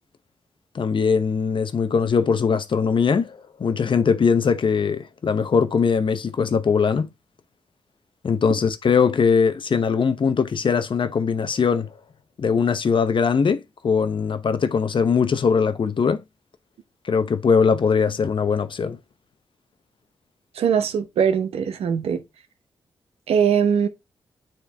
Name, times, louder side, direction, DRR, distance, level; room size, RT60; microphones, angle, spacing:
voice 1, 0.7-7.1 8.2-11.9 12.4-16.2 17.0-19.0, left 5 dB, 55° left, 0.8 m, -21 dB
voice 2, 20.6-22.2 23.3-23.9, right 7 dB, 85° right, 0.8 m, -21 dB
9.0 x 3.1 x 3.4 m
cardioid pair, 50°, 10 cm